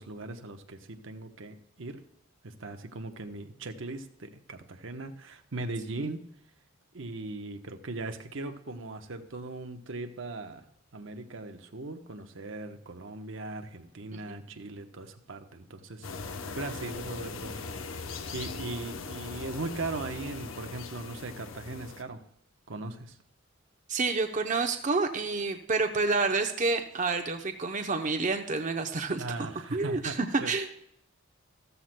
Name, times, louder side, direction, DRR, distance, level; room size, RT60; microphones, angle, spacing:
voice 1, 0.0-2.0 2.4-6.2 6.9-10.6 10.9-18.0 18.3-22.2 22.7-23.2 29.2-30.5, right 2 dB, 75° right, 6 dB, 0.9 m, -39 dB
sound 1, 16.0-22.0, left 4 dB, 85° left, 0.8 m, -40 dB
voice 2, 23.9-30.7, right 3 dB, 40° right, 5 dB, 0.7 m, -29 dB
14.5 x 13.5 x 2.2 m, 0.74 s
head